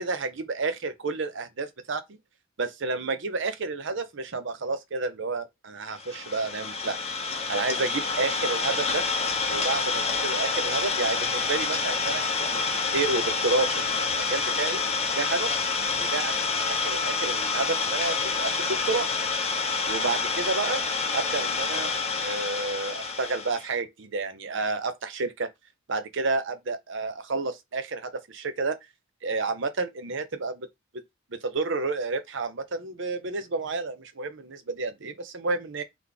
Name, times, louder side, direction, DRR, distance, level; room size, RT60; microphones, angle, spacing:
voice 1, 0.0-2.2 2.6-7.0 7.3-9.0 9.5-14.8 15.2-15.5 15.9-19.1 19.9-20.8 21.1-21.9 22.2-25.5 25.9-28.8 29.2-30.7 31.4-35.8, right 3 dB, 65° right, 0.8 m, -30 dB
Idling, 6.0-23.7, left 4 dB, 30° left, 1.1 m, -28 dB
3.8 x 3.1 x 3.5 m
head